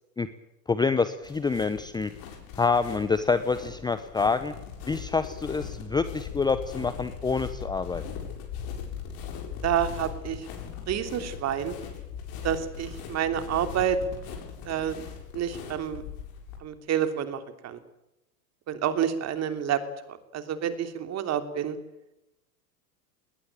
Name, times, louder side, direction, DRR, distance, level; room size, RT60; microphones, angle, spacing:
voice 1, 0.7-2.1 2.6-4.5 4.9-8.0, left 4 dB, 10° left, 12 dB, 0.9 m, -27 dB
sound 1, 1.2-16.6, left 7 dB, 45° left, 7.6 m, -39 dB
voice 2, 9.6-10.4 10.9-11.7 12.4-14.0 14.6-15.0 15.3-16.0 16.6-17.8 18.7-19.8 20.3-21.8, right 9 dB, 30° right, 9 dB, 3.1 m, -28 dB
20.0 x 20.0 x 9.0 m, 0.89 s
hypercardioid pair, 115°, 49 cm